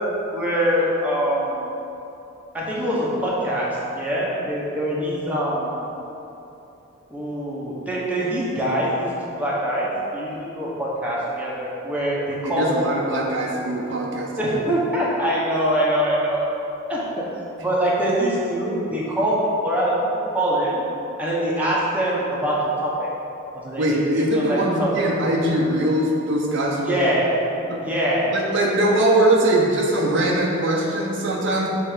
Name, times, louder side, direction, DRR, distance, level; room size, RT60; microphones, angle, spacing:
voice 1, 0.0-1.7 2.5-5.8 7.1-12.7 13.0-13.2 14.4-16.5 16.9-17.3 17.6-20.8 21.2-23.1 23.5-24.9 26.9-27.3 27.8-28.2, equal, 10° right, -6 dB, 1.0 m, -24 dB
voice 2, 12.4-14.6 23.8-26.9 27.7-27.8 28.3-31.7, right 1 dB, 65° right, -2 dB, 0.7 m, -21 dB
6.5 x 3.4 x 5.0 m, 2.9 s
head